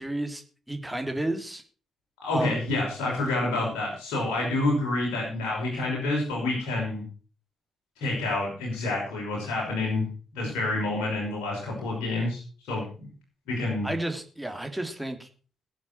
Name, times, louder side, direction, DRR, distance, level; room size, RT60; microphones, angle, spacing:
voice 1, 0.0-1.6 2.3-2.6 5.7-5.8 13.8-15.3, right 1 dB, 10° right, 6 dB, 3.0 m, -32 dB
voice 2, 2.2-7.1 8.0-10.0 10.3-12.4 12.7-13.1 13.5-13.9, left 2 dB, 65° left, -3 dB, 5.9 m, -28 dB
20.5 x 7.5 x 4.4 m, 0.38 s
figure-of-eight pair, 40°, 0 cm